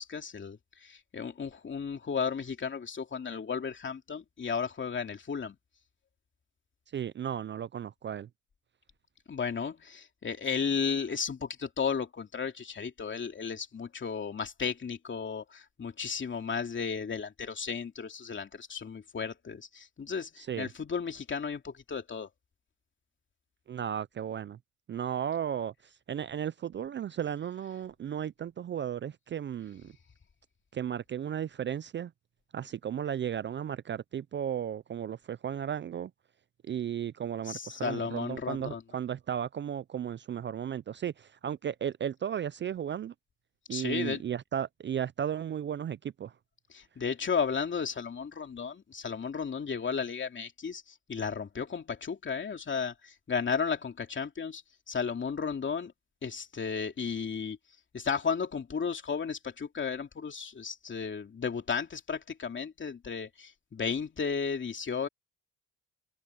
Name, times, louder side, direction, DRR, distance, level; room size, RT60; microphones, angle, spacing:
voice 1, 0.0-5.6 9.3-22.3 37.5-38.8 43.7-44.2 46.7-50.8 51.1-54.6 54.9-55.9 56.2-57.6 57.9-65.1, left 6 dB, 40° left, 2.9 m, -34 dB
voice 2, 6.9-8.3 20.4-20.7 23.7-24.6 24.9-25.7 26.1-29.9 30.7-32.1 32.5-36.1 36.7-43.1 43.7-46.3, right 9 dB, 40° right, 0.4 m, -35 dB
cardioid pair, 90°, 30 cm